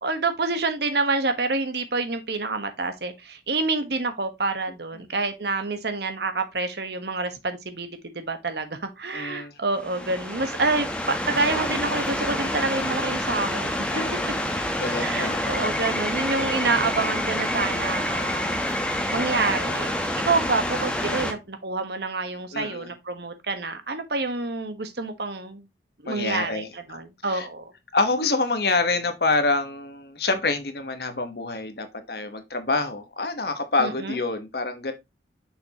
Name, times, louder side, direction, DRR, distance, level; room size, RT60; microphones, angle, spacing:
voice 1, 0.0-14.0 15.0-25.7 26.0-27.7 33.8-34.2, right 3 dB, 65° right, 1.3 m, -28 dB
voice 2, 9.1-9.5 13.9-14.2 14.8-15.4 22.5-22.9 26.0-26.7 27.2-27.5 27.9-34.9, left 3 dB, 60° left, 1.2 m, -26 dB
sound 1, 9.8-21.3, left 1 dB, 5° left, 1.0 m, -27 dB
6.4 x 6.0 x 2.9 m
head